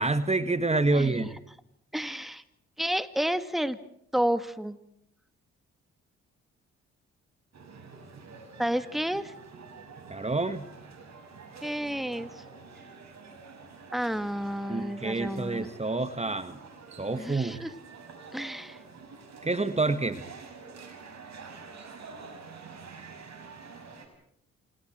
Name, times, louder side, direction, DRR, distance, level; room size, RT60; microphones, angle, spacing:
voice 1, 0.0-1.4 10.1-10.7 14.7-16.6 17.0-17.6 19.4-20.2, right 3 dB, 20° right, 11 dB, 1.7 m, -28 dB
voice 2, 0.9-1.3 1.9-2.4 2.8-3.8 4.1-4.8 8.6-9.3 11.6-12.4 13.9-15.7 17.2-17.7 18.3-18.8, equal, ahead, 11 dB, 2.0 m, -31 dB
sound 1, 7.5-24.1, right 4 dB, 55° right, 7.0 m, -47 dB
28.5 x 27.0 x 4.5 m, 0.72 s
hypercardioid pair, 50°, 34 cm